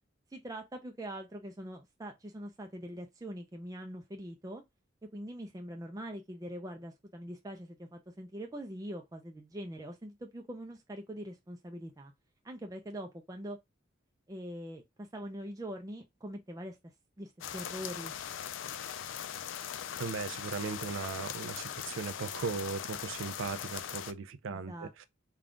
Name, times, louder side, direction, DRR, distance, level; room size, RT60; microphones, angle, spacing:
voice 1, 0.3-4.6 5.1-12.1 12.4-13.6 14.3-16.8 17.2-18.1 24.5-25.1, equal, 20° right, 0.4 m, -43 dB
sound 1, 17.4-24.1, left 9 dB, 80° left, 0.4 m, -40 dB
voice 2, 20.0-25.1, right 5 dB, 85° right, 0.4 m, -38 dB
3.5 x 2.3 x 3.7 m
head